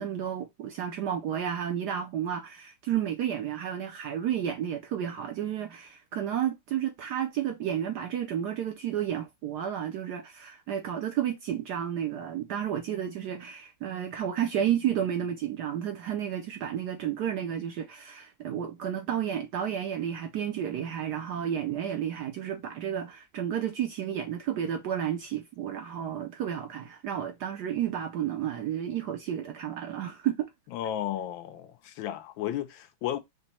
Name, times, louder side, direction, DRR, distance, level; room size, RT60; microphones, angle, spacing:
voice 1, 0.0-30.5, right 9 dB, 70° right, 1.0 m, -31 dB
voice 2, 30.7-33.2, left 11 dB, 75° left, 1.3 m, -33 dB
5.1 x 2.1 x 4.2 m
omnidirectional pair, 2.3 m